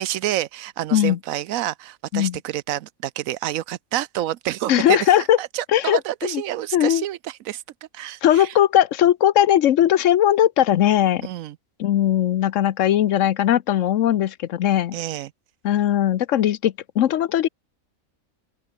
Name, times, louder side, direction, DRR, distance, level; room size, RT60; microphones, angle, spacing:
voice 1, 0.0-7.6 7.9-8.5 11.2-11.6 14.9-15.3, right 13 dB, 85° right, 1.1 m, -28 dB
voice 2, 4.7-5.4 5.7-6.4 6.7-7.0 8.2-11.3 11.8-15.0 15.6-17.5, left 11 dB, 70° left, 1.0 m, -19 dB
open air
omnidirectional pair, 1.4 m